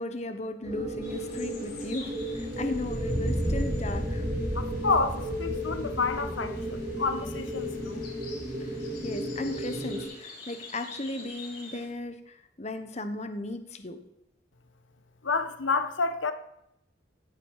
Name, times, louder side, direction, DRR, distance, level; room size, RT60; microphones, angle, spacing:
voice 1, 0.0-4.2 8.6-8.8 9.0-14.0, left 2 dB, 35° left, 9 dB, 1.1 m, -36 dB
sound 1, 0.6-10.0, equal, 20° right, 5.2 m, -32 dB
sound 2, 1.0-11.9, left 3 dB, 55° left, 6.8 m, -48 dB
voice 2, 4.5-8.1 15.2-16.3, left 4 dB, 90° left, 9 dB, 1.3 m, -29 dB
17.5 x 11.5 x 4.8 m, 0.83 s
head